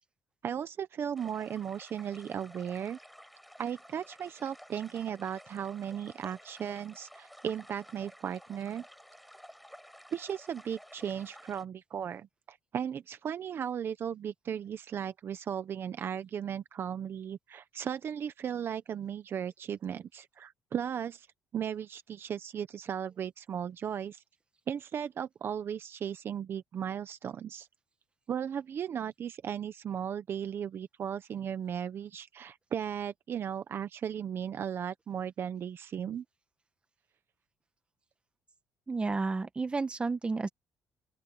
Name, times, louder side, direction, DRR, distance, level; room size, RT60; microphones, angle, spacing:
voice 1, 0.4-3.0 3.6-8.8 10.1-21.3 21.5-24.2 24.7-27.7 28.3-36.2, right 8 dB, 45° right, 1.0 m, -36 dB
sound 1, 1.2-11.7, equal, ahead, 6.3 m, -53 dB
voice 2, 38.9-40.5, right 3 dB, 20° right, 1.4 m, -31 dB
open air
cardioid pair, 125°, 5 cm